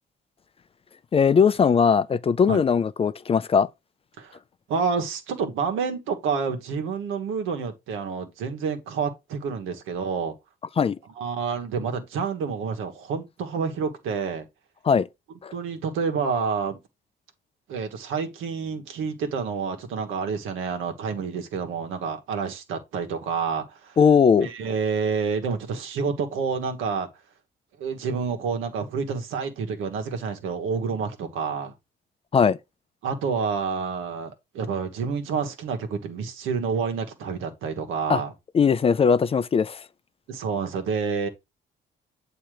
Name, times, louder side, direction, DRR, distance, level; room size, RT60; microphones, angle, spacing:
voice 1, 1.1-3.7 10.8-11.0 14.9-15.1 15.4-15.5 24.0-24.5 32.3-32.6 38.1-38.2 38.5-39.8, left 6 dB, 30° left, 0.3 m, -19 dB
voice 2, 4.7-10.3 11.2-14.5 15.5-16.8 17.7-24.0 24.4-27.1 27.8-31.7 33.0-38.3 40.3-41.3, right 5 dB, 90° right, 1.2 m, -28 dB
7.5 x 2.9 x 4.8 m
cardioid pair, 90°, 20 cm